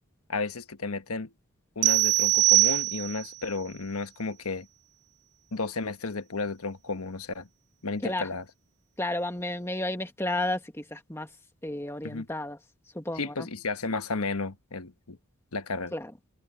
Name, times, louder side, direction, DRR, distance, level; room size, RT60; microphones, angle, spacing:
voice 1, 0.3-1.3 1.8-4.7 5.5-7.5 7.8-8.5 12.0-12.3 13.1-15.2 15.5-15.9, left 3 dB, 80° left, 1.3 m, -33 dB
sound 1, 1.8-3.4, right 19 dB, 50° right, 0.4 m, -22 dB
voice 2, 9.0-11.3 11.6-12.6 12.9-13.5 15.9-16.1, left 1 dB, 10° left, 1.7 m, -32 dB
open air
head